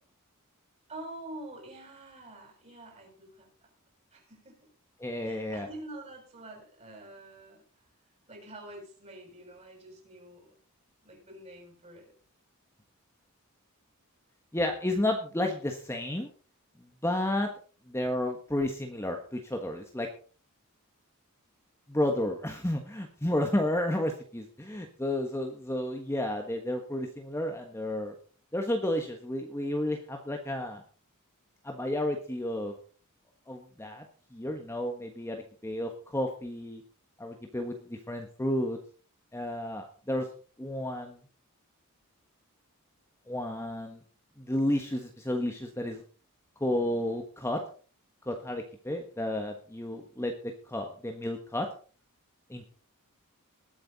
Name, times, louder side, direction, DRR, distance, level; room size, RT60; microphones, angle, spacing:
voice 1, 0.9-3.7 4.1-4.7 5.2-7.6 8.3-10.6 11.0-12.1, right 1 dB, 30° right, 0 dB, 7.1 m, -46 dB
voice 2, 5.0-5.7 14.5-16.3 17.0-17.5 17.9-20.1 21.9-28.1 28.5-30.8 31.6-32.7 33.5-34.0 34.3-36.8 37.2-38.8 39.3-40.3 40.6-41.2 43.3-44.0 44.4-46.0 46.6-47.6 48.2-51.7 52.5-52.7, left 1 dB, 10° left, 3 dB, 1.3 m, -31 dB
20.0 x 8.7 x 4.1 m, 0.40 s
head